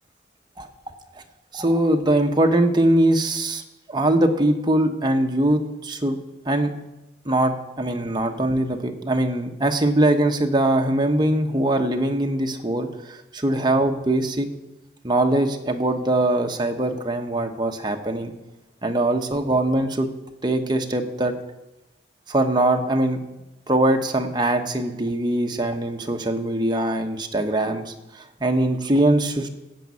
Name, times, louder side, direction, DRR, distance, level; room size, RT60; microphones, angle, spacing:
voice 1, 1.5-3.6 3.9-6.2 6.5-6.7 7.2-14.5 15.0-18.3 18.8-20.1 20.4-21.3 22.3-23.2 23.7-29.5, right 1 dB, 25° right, 4 dB, 1.1 m, -22 dB
15.5 x 5.4 x 8.4 m, 0.98 s
head